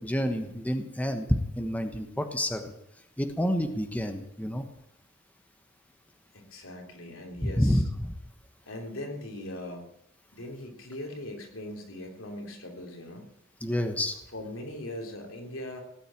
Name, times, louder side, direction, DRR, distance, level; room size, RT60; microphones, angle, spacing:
voice 1, 0.0-2.7 3.2-4.6 7.4-8.1 13.6-14.2, equal, 10° left, 6 dB, 1.3 m, -28 dB
voice 2, 6.3-7.8 8.7-9.8 10.3-13.3 14.3-15.8, left 1 dB, 75° left, 2 dB, 3.6 m, -40 dB
18.0 x 9.1 x 8.6 m, 0.84 s
head